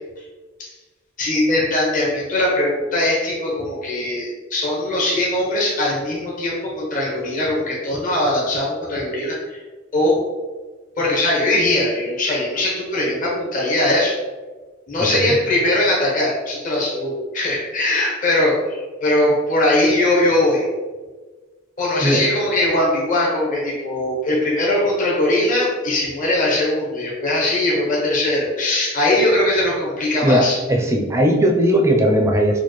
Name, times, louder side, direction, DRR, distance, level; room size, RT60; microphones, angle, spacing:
voice 1, 1.2-9.6 9.9-10.2 11.0-14.2 14.9-20.6 21.8-30.6, left 1 dB, 45° left, -4 dB, 0.8 m, -20 dB
voice 2, 15.0-15.3 22.0-22.2 30.2-32.6, equal, 15° right, 1 dB, 0.4 m, -18 dB
4.3 x 2.2 x 3.0 m, 1.3 s
head